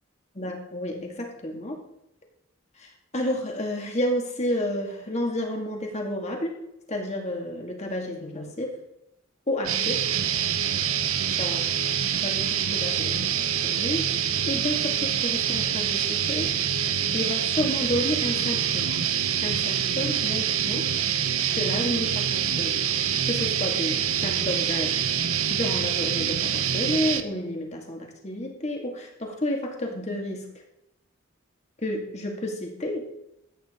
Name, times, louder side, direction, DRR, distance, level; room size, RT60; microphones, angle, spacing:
voice 1, 0.3-1.8 2.8-6.5 6.9-8.8 9.5-10.1 11.4-11.6 12.2-16.5 17.1-19.0 19.4-20.9 21.5-22.8 23.3-25.0 25.5-30.5 31.8-33.1, left 1 dB, 30° left, 1 dB, 2.3 m, -31 dB
sound 1, 9.6-27.2, right 9 dB, 80° right, 0.9 m, -26 dB
14.0 x 9.2 x 3.8 m, 0.84 s
head